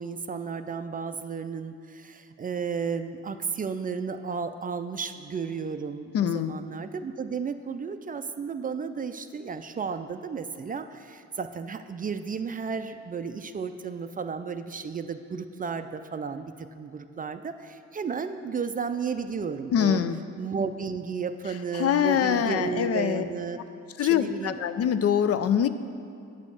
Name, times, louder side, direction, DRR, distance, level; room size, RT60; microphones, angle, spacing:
voice 1, 0.0-20.0 20.4-23.6 24.0-24.6, right 5 dB, 30° right, 9 dB, 0.4 m, -33 dB
voice 2, 6.1-6.6 19.7-20.2 21.7-23.3 24.0-25.7, left 9 dB, 55° left, 11 dB, 0.4 m, -24 dB
8.2 x 5.2 x 6.9 m, 2.4 s
cardioid pair, 90°, 30 cm